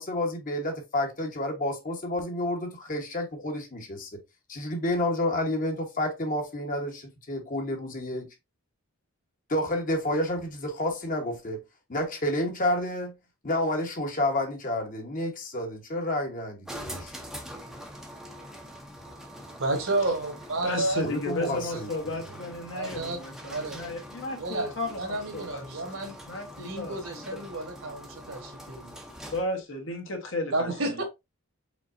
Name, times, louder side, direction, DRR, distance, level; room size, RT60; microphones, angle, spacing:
voice 1, 0.0-4.1 4.5-8.3 9.5-11.6 11.9-13.1 13.4-17.1 21.0-21.9, left 1 dB, 40° left, 1.2 m, -30 dB
sound 1, 16.7-29.6, equal, ahead, 0.7 m, -44 dB
voice 2, 19.6-21.0 21.7-21.8 22.7-23.2 23.5-23.9 24.3-26.1 26.6-28.9 30.5-31.0, right 2 dB, 65° right, 1.5 m, -31 dB
voice 3, 20.6-27.4 29.3-31.0, left 2 dB, 60° left, 1.3 m, -34 dB
5.0 x 3.9 x 2.6 m
head